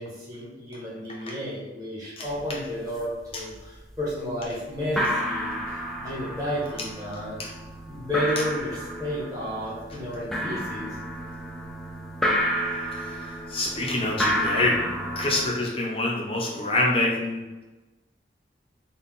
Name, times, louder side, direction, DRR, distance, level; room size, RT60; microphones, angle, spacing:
voice 1, 0.0-7.4 7.9-11.0, equal, 20° right, -8 dB, 1.3 m, -32 dB
sound 1, 2.3-2.4 2.7-3.2 3.5-4.1 4.4-4.5 4.8-15.5, equal, ahead, 0.4 m, -31 dB
voice 2, 13.5-17.4, left 2 dB, 30° left, -2 dB, 0.7 m, -26 dB
4.1 x 2.4 x 3.6 m, 1.1 s
head